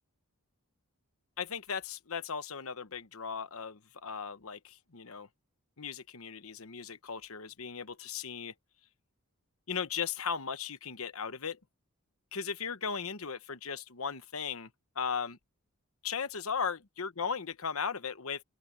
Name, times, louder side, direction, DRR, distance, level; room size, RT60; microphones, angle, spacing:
voice 1, 1.4-5.3 5.8-8.5 9.7-11.6 12.3-14.7 14.9-15.4 16.0-18.4, left 6 dB, 65° left, 1.1 m, -37 dB
open air
head